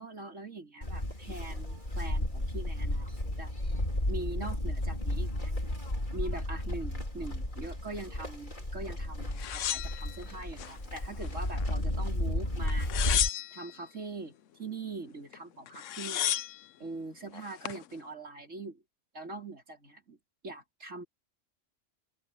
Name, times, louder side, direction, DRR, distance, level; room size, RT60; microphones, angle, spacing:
voice 1, 0.0-3.5 4.1-5.5 6.1-12.9 13.5-16.3 16.8-18.8 19.1-20.2 20.4-21.0, right 3 dB, 85° right, 4.7 m, -42 dB
Livestock farm animals working animals, 0.8-13.3, left 1 dB, 40° left, 4.1 m, -33 dB
sound 1, 9.4-10.7 11.2-12.0 12.7-13.8 15.3-15.4 15.7-16.6 17.3-17.8, left 11 dB, 90° left, 1.0 m, -33 dB
open air
omnidirectional pair, 1.3 m